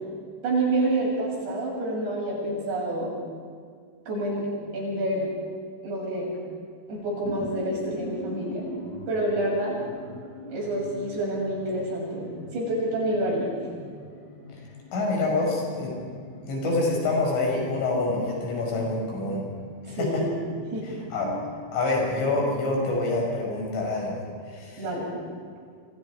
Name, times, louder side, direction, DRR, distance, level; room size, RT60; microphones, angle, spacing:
voice 1, 0.4-3.1 4.1-4.5 4.7-5.3 5.8-6.3 6.9-8.7 9.1-9.8 10.5-13.5 19.8-20.2 20.7-20.9 24.8-25.2, right 1 dB, 60° right, -3 dB, 9.5 m, -28 dB
sound 1, 6.9-21.6, left 1 dB, 20° left, 3.7 m, -43 dB
voice 2, 14.9-15.9 16.4-19.4 19.9-20.2 20.8-24.8, left 2 dB, 75° left, -1 dB, 8.3 m, -27 dB
29.5 x 25.0 x 4.9 m, 2.1 s
omnidirectional pair, 5.5 m